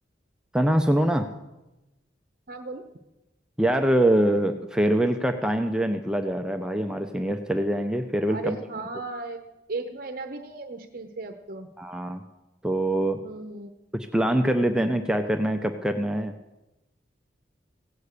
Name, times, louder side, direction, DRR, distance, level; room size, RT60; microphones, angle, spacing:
voice 1, 0.5-1.3 3.6-8.6 11.8-12.2 12.6-13.2 13.9-16.3, right 1 dB, 5° right, 6 dB, 0.5 m, -24 dB
voice 2, 2.5-2.9 8.3-9.4 9.7-11.7 13.2-13.7, right 3 dB, 50° right, 6 dB, 0.8 m, -36 dB
16.0 x 8.4 x 6.6 m, 1.0 s
head